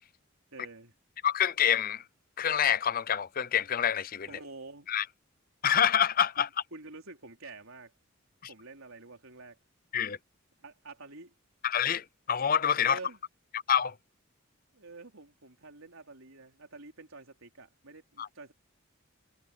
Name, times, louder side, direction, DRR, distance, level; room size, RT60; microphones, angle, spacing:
voice 1, 0.5-0.9 4.2-4.9 6.4-7.9 8.5-9.6 10.6-11.3 12.8-13.2 14.7-18.5, right 3 dB, 80° right, 4.0 m, -48 dB
voice 2, 1.2-2.0 2.4-4.3 4.9-5.0 5.6-6.5 9.9-10.2 11.6-13.0 13.5-13.9 18.2-18.3, left 9 dB, 45° left, 0.6 m, -27 dB
head